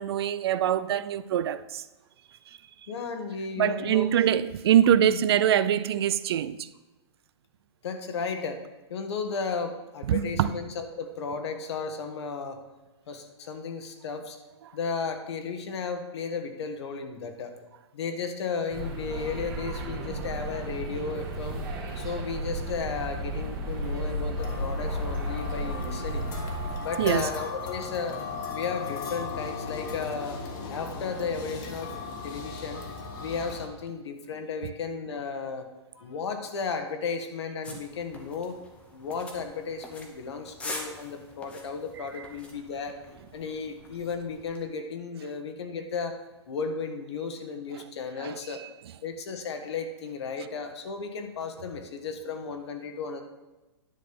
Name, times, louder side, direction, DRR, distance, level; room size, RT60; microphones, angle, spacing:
voice 1, 0.0-1.9 2.5-2.6 3.6-6.7 10.0-10.5 27.0-27.3 37.7-37.8 47.7-47.8 48.2-48.7, right 10 dB, 60° right, 0.4 m, -24 dB
voice 2, 2.9-4.1 5.1-5.2 7.8-8.6 8.9-12.6 13.1-14.4 14.7-17.5 17.9-21.6 21.9-26.3 26.8-28.2 28.5-30.4 30.7-31.9 32.2-32.8 33.2-35.7 35.9-38.6 38.9-43.0 43.3-46.2 46.5-48.6 49.0-53.2, left 5 dB, 65° left, 1.4 m, -34 dB
sound 1, 18.7-26.8, right 1 dB, 25° right, 1.6 m, -33 dB
sound 2, 24.4-33.7, left 4 dB, 45° left, 1.5 m, -37 dB
sound 3, 37.6-44.6, left 2 dB, 10° left, 0.8 m, -44 dB
10.0 x 4.1 x 6.9 m
hypercardioid pair, 165°, 15 cm